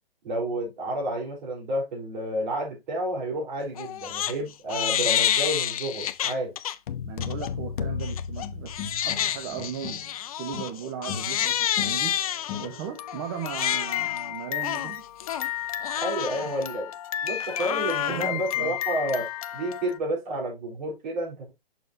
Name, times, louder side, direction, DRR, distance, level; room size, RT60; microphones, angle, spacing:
voice 1, 0.2-6.5 16.0-16.9 17.2-21.5, right 1 dB, 50° right, 4.0 m, -30 dB
Crying sobbing, 3.8-4.3 4.7-6.7 7.2-7.5 8.0-20.0, left 11 dB, 35° left, 0.5 m, -29 dB
sound 1, 6.9-9.4, left 7 dB, 55° left, 0.9 m, -33 dB
voice 2, 7.0-8.7 9.0-10.0 10.4-12.1 12.6-15.0 16.3-16.5 18.0-18.8, right 8 dB, 25° right, 0.9 m, -36 dB
sound 2, 8.4-10.2 10.5-13.1, left 7 dB, 15° left, 0.8 m, -39 dB
6.8 x 6.2 x 2.7 m
hypercardioid pair, 145°, 30 cm